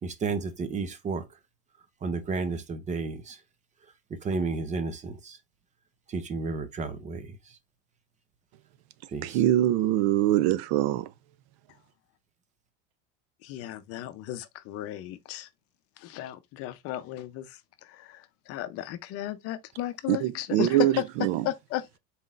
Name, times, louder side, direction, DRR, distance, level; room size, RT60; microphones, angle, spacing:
voice 1, 0.0-1.4 2.0-3.4 4.1-5.4 6.1-7.6 9.1-9.4, right 4 dB, 25° right, 0.7 m, -32 dB
voice 2, 9.2-11.1 20.1-20.9 21.2-21.4, right 14 dB, 60° right, 0.4 m, -23 dB
voice 3, 13.4-15.5 16.0-21.0 21.4-22.0, left 13 dB, 50° left, 0.6 m, -35 dB
4.2 x 3.7 x 2.4 m
supercardioid pair, 130°, 30 cm